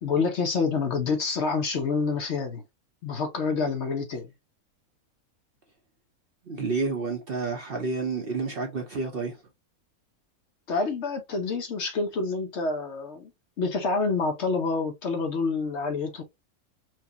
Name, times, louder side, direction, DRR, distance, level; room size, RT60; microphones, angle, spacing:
voice 1, 0.0-2.6 3.0-4.3 10.7-13.3 13.6-16.2, left 4 dB, 55° left, 0.9 m, -27 dB
voice 2, 6.5-9.4, right 4 dB, 50° right, 0.7 m, -30 dB
4.6 x 2.2 x 2.7 m
omnidirectional pair, 1.5 m